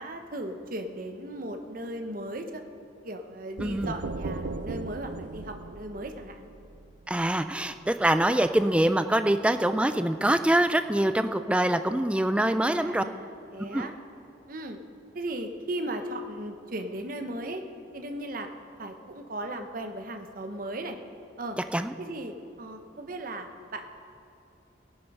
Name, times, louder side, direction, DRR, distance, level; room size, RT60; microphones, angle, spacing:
voice 1, 0.0-2.6 3.0-6.5 12.5-13.9 14.5-14.8 15.1-17.6 17.9-18.5 18.8-21.0 21.4-21.6 22.0-23.9, right 1 dB, 50° right, 6 dB, 1.0 m, -37 dB
voice 2, 3.6-3.9 7.1-13.0 13.7-13.9 21.7-21.9, right 1 dB, 5° right, 10 dB, 0.4 m, -24 dB
sound 1, 3.6-7.3, right 3 dB, 65° right, 0.5 m, -37 dB
18.5 x 9.0 x 5.4 m, 2.8 s
head